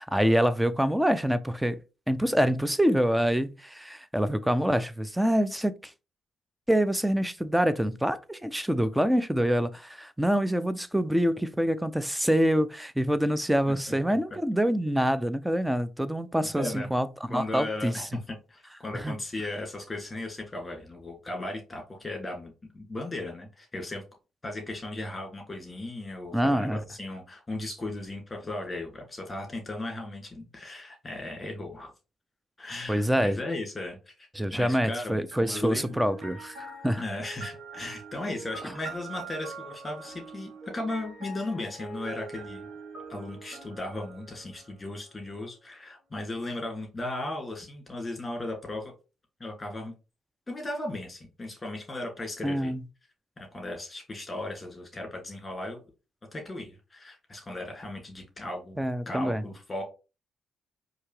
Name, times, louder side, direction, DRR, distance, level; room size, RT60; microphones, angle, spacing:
voice 1, 0.0-1.8 2.1-5.9 6.7-17.9 18.9-19.2 26.3-26.8 32.9-33.4 34.4-37.0 52.4-52.8 58.8-59.4, equal, 5° right, 0.4 m, -26 dB
voice 2, 13.9-14.2 16.5-16.9 17.3-24.0 24.4-31.9 32.6-36.0 37.0-42.7 43.1-48.9 49.4-49.9 50.5-52.7 53.4-55.8 56.3-58.8 59.1-59.8, left 2 dB, 20° left, 2.1 m, -36 dB
sound 1, 35.3-45.1, right 4 dB, 55° right, 1.4 m, -44 dB
4.5 x 2.8 x 3.1 m
cardioid pair, 90°, 0 cm